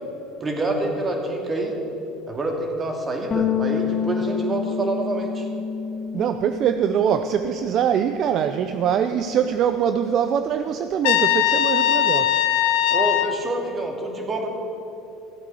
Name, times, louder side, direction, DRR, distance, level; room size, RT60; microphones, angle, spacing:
voice 1, 0.4-1.8 2.3-5.5 12.9-14.5, right 2 dB, 25° right, 2 dB, 2.5 m, -27 dB
sound 1, 3.3-7.9 8.1-9.6, left 7 dB, 30° left, 0.9 m, -29 dB
voice 2, 6.1-12.5, right 8 dB, 50° right, 9 dB, 0.5 m, -23 dB
Trumpet, 11.0-13.4, left 12 dB, 75° left, 0.7 m, -20 dB
15.0 x 8.2 x 6.9 m, 2.9 s
supercardioid pair, 100°, 0 cm